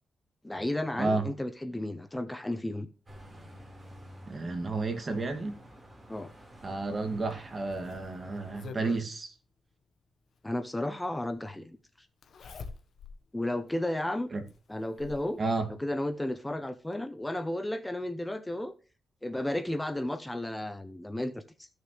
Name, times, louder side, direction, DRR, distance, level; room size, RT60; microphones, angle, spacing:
voice 1, 0.4-2.9 6.1-6.3 10.4-11.8 13.3-14.3 14.7-15.4 15.8-18.7 19.2-21.7, left 1 dB, 10° left, 0.8 m, -33 dB
voice 2, 1.0-1.3 4.3-5.6 6.6-9.3 14.3-14.4 15.4-15.7, right 3 dB, 40° right, 2.3 m, -31 dB
sound 1, 3.1-8.7, equal, 20° right, 4.5 m, -51 dB
Zipper (clothing), 7.3-9.1 10.5-10.6 12.2-13.2 13.7-13.8 14.5-15.3 16.5-16.6 16.9-17.0, left 4 dB, 65° left, 1.3 m, -45 dB
14.5 x 6.5 x 3.3 m
cardioid pair, 75°, 0 cm